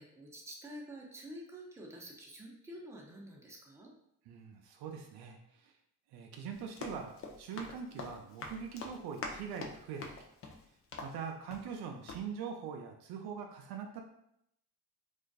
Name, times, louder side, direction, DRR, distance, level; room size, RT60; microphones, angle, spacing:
voice 1, 0.0-3.9, right 1 dB, 5° right, -2 dB, 0.6 m, -48 dB
voice 2, 4.3-5.7 6.1-10.3 11.0-14.0, right 6 dB, 60° right, 3 dB, 0.5 m, -43 dB
Run, 6.5-11.8 12.1-12.2, left 3 dB, 35° left, 0.5 m, -46 dB
2.5 x 2.3 x 2.3 m, 0.75 s
hypercardioid pair, 60°, 42 cm